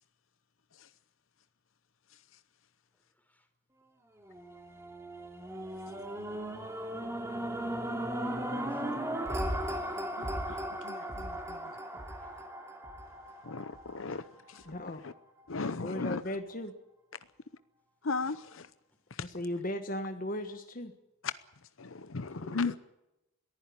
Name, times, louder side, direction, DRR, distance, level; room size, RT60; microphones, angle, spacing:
sound 1, 4.2-14.5 15.1-15.2, right 1 dB, 15° right, 2.9 m, -37 dB
voice 1, 8.7-10.4 12.2-12.3 14.0-14.1 15.7-15.8 22.2-22.8, right 1 dB, 10° left, 6 dB, 4.0 m, -57 dB
voice 2, 10.2-11.7 13.4-14.6 15.0-15.1 15.5-16.2 18.0-18.7 19.1-19.3 21.8-22.8, left 4 dB, 75° left, 13 dB, 0.8 m, -37 dB
voice 3, 14.6-15.0 15.7-16.7 19.2-20.9, left 1 dB, 45° left, 6 dB, 1.5 m, -37 dB
22.0 x 15.0 x 9.8 m, 0.92 s
head